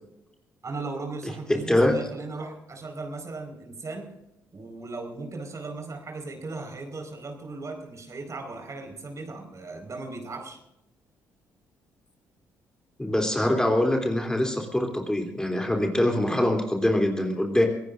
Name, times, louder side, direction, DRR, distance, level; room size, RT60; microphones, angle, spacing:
voice 1, 0.6-4.1 4.5-10.6, right 3 dB, 40° right, 4 dB, 4.9 m, -37 dB
voice 2, 1.5-1.9 13.0-17.7, left 1 dB, 10° left, 2 dB, 3.3 m, -24 dB
24.5 x 18.0 x 2.6 m, 0.85 s
hypercardioid pair, 45°, 8 cm